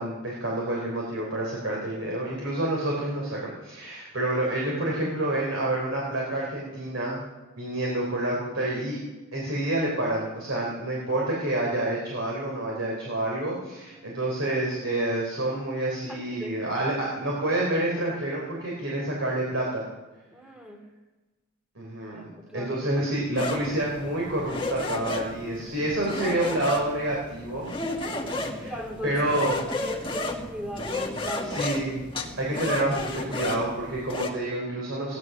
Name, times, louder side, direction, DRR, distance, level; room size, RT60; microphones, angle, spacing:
voice 1, 0.0-7.2 7.6-9.0 9.3-19.8 21.8-27.7 28.6-28.7 29.0-29.6 31.2-32.0 32.4-35.2, right 1 dB, 60° right, -3 dB, 3.5 m, -28 dB
voice 2, 16.1-16.9 20.3-20.9 22.1-23.1 28.7-29.2 29.7-31.6, equal, 5° right, 1 dB, 2.2 m, -39 dB
sound 1, 23.3-34.3, left 2 dB, 25° left, 1.7 m, -33 dB
16.5 x 11.0 x 6.1 m, 1.2 s
head